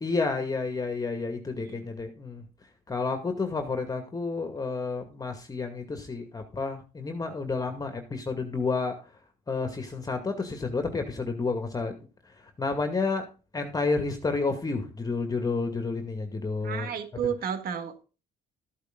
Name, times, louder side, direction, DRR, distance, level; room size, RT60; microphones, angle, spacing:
voice 1, 0.0-2.4 2.9-8.9 9.5-11.9 12.6-13.3 13.5-16.9, left 4 dB, 20° left, 2.2 m, -30 dB
voice 2, 16.6-18.0, right 8 dB, 60° right, 2.0 m, -32 dB
14.0 x 8.3 x 4.0 m
cardioid pair, 110°, 17 cm